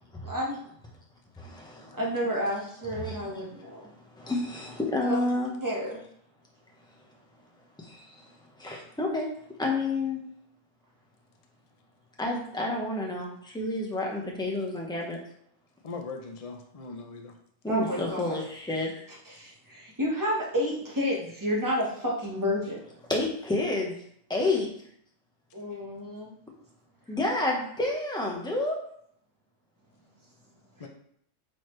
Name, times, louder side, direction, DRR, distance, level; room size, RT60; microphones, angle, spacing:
voice 1, 0.2-0.6 2.0-3.9 5.0-5.2 5.6-6.0 17.7-18.3 19.3-22.8 25.5-26.3 30.8-30.9, equal, 15° right, -4 dB, 1.5 m, -30 dB
voice 2, 1.4-2.0 2.9-3.2 4.2-5.5 7.9-8.0 8.6-9.3 9.6-10.2 12.2-15.2 17.6-19.0 23.1-23.9 24.3-24.7 27.1-28.8, left 2 dB, 5° left, -1 dB, 1.2 m, -29 dB
voice 3, 15.8-17.3 30.8-30.9, left 4 dB, 35° left, 3 dB, 0.8 m, -40 dB
8.7 x 4.1 x 3.3 m, 0.67 s
omnidirectional pair, 1.2 m